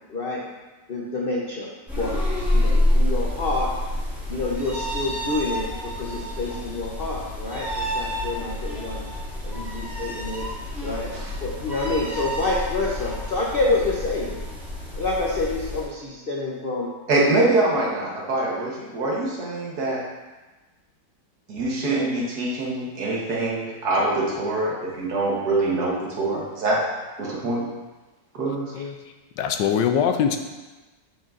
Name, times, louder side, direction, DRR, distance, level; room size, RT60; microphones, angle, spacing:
voice 1, 0.1-0.4 0.9-2.2 2.5-3.7 4.3-9.0 9.4-10.5 10.8-11.1 11.4-14.4 14.9-16.9, left 2 dB, 55° left, -3 dB, 0.6 m, -28 dB
sound 1, 1.9-15.8, left 1 dB, ahead, 1.9 m, -28 dB
voice 2, 17.1-20.0 21.5-26.8 27.2-27.7 28.3-28.7, right 2 dB, 60° right, -3 dB, 1.7 m, -24 dB
voice 3, 29.4-30.4, left 8 dB, 80° left, 6 dB, 1.2 m, -22 dB
7.9 x 6.2 x 2.5 m, 1.2 s
omnidirectional pair, 2.0 m